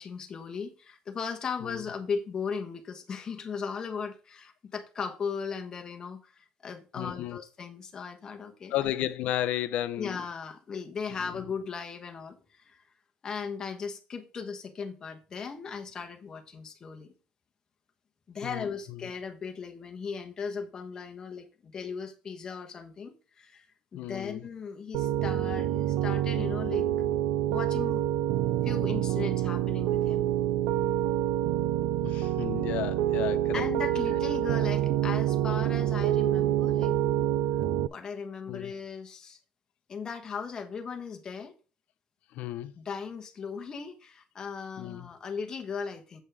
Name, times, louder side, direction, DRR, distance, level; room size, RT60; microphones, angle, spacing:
voice 1, 0.0-8.9 10.0-12.8 13.2-17.1 18.3-23.7 23.9-26.9 27.5-28.0 28.6-30.3 33.5-37.0 37.9-39.4 39.9-41.5 42.7-46.2, left 5 dB, 25° left, 1.2 m, -37 dB
voice 2, 7.0-7.4 8.7-10.2 11.2-11.3 18.4-18.7 23.9-24.4 32.0-33.7 38.5-38.7 42.3-42.7 44.8-45.1, left 13 dB, 55° left, 0.6 m, -33 dB
Piano, 24.9-37.9, right 12 dB, 80° right, 0.4 m, -27 dB
8.0 x 5.5 x 4.8 m
cardioid pair, 170°, 3 cm